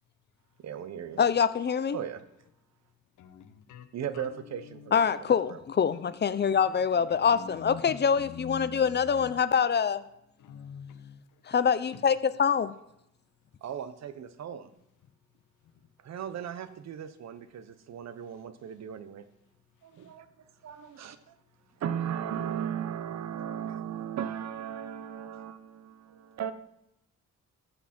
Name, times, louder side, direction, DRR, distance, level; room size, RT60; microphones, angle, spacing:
voice 1, 0.6-1.2 1.9-2.2 3.9-5.6 13.6-14.7 16.0-19.2 19.8-20.3 20.6-21.1 21.8-26.5, right 9 dB, 60° right, 1.0 m, -37 dB
voice 2, 1.2-2.0 4.9-10.0 11.5-12.7, left 7 dB, 35° left, 0.7 m, -25 dB
voice 3, 3.2-3.9 4.1-4.3 4.5-4.9 6.6-9.3 10.4-11.2, left 7 dB, 80° left, 1.2 m, -45 dB
14.0 x 7.1 x 4.4 m
cardioid pair, 90°, 30 cm